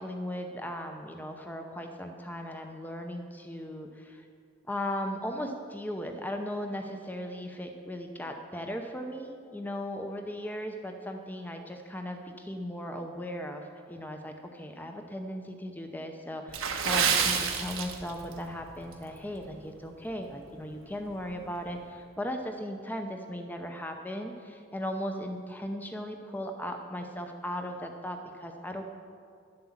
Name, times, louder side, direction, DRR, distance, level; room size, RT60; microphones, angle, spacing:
voice 1, 0.0-4.2 4.7-28.8, equal, 10° left, 4 dB, 0.7 m, -37 dB
Water / Splash splatter, 16.5-18.4 18.7-18.9 19.5-19.7 20.2-20.3, right 6 dB, 85° right, 1.1 m, -28 dB
11.5 x 7.8 x 7.3 m, 2.3 s
head